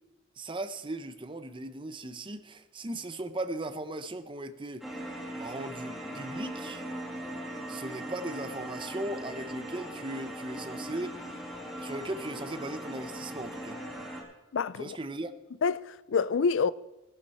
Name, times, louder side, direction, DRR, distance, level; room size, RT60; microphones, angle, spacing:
voice 1, 0.4-5.1 5.4-6.8 7.7-11.4 11.8-13.8 14.8-15.3, right 2 dB, 25° right, 0.8 m, -38 dB
sound 1, 4.8-14.2, right 1 dB, ahead, 2.3 m, -39 dB
voice 2, 14.5-15.0 15.6-16.7, left 5 dB, 65° left, 0.4 m, -27 dB
14.5 x 11.5 x 4.3 m
head